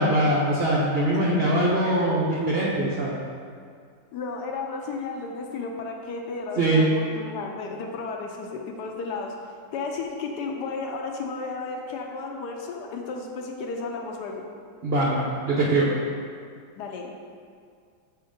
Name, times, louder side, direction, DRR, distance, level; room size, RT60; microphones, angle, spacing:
voice 1, 0.0-3.2 6.6-6.9 14.8-15.9, right 1 dB, 75° right, -5 dB, 0.5 m, -22 dB
voice 2, 4.1-9.3 9.7-14.4 16.8-17.3, left 4 dB, 70° left, 2 dB, 1.1 m, -33 dB
6.8 x 2.9 x 5.0 m, 2.2 s
omnidirectional pair, 1.9 m